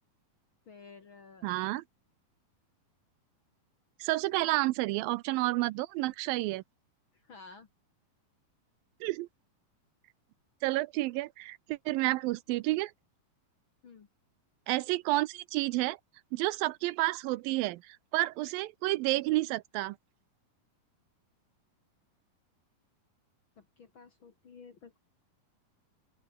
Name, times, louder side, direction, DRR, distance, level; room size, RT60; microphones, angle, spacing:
voice 1, 0.7-1.5 4.3-4.5 7.1-7.7 13.8-14.1 23.6-25.0, left 5 dB, 45° left, 1.8 m, -53 dB
voice 2, 1.4-1.8 4.0-6.6 9.0-9.3 10.6-12.9 14.7-16.0 16.3-20.0, right 19 dB, 80° right, 2.3 m, -30 dB
open air
omnidirectional pair, 4.3 m